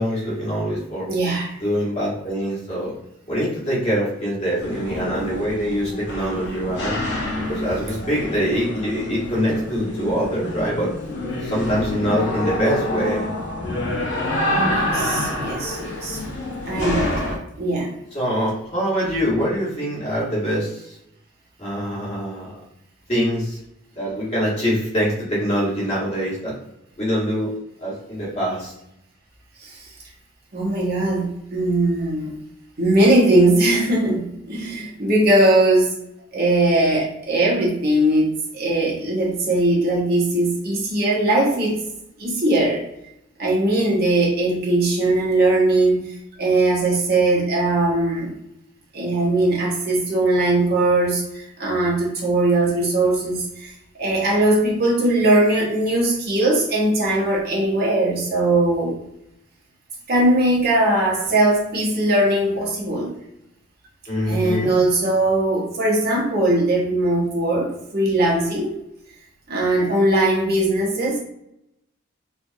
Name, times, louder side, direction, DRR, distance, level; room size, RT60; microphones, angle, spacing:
voice 1, 0.0-1.1 1.6-2.9 3.3-7.0 7.5-10.9 11.4-13.3 18.1-20.9 21.6-22.5 23.1-23.6 23.9-26.5 27.0-27.5 27.8-28.7 64.1-64.7, equal, 30° left, -7 dB, 1.3 m, -24 dB
voice 2, 1.1-1.5 14.7-16.2 16.7-17.3 17.6-17.9 29.6-29.9 30.5-32.3 32.8-35.9 36.3-41.8 42.2-42.8 43.4-48.3 48.9-59.0 60.1-63.2 64.2-68.7 69.5-71.2, right 1 dB, 45° right, -3 dB, 0.9 m, -20 dB
sound 1, 4.6-17.4, left 1 dB, 55° left, 0.8 m, -27 dB
4.3 x 2.5 x 2.6 m, 0.80 s
head